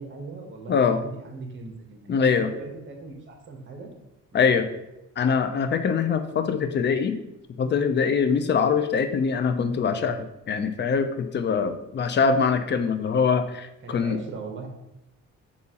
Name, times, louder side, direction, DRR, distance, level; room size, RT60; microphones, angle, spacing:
voice 1, 0.0-3.9 13.8-14.7, right 4 dB, 40° right, 3 dB, 1.0 m, -39 dB
voice 2, 0.7-1.0 2.1-2.5 4.3-4.7 5.2-7.1 7.6-14.2, left 6 dB, 35° left, 9 dB, 0.4 m, -23 dB
6.8 x 2.4 x 2.8 m, 0.90 s
cardioid pair, 90°, 30 cm